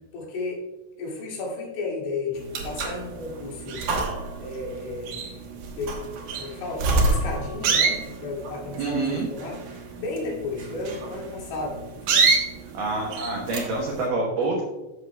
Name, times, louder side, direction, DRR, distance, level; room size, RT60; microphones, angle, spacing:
voice 1, 0.1-0.6 1.0-3.9 4.4-5.5 5.8-6.0 6.4-12.3, left 3 dB, 75° left, -4 dB, 4.7 m, -33 dB
sound 1, 2.4-14.1, right 4 dB, 65° right, 2.4 m, -27 dB
voice 2, 8.8-9.3 12.7-14.6, right 3 dB, 80° right, -1 dB, 1.9 m, -27 dB
13.0 x 7.1 x 2.3 m, 1.1 s
omnidirectional pair, 5.6 m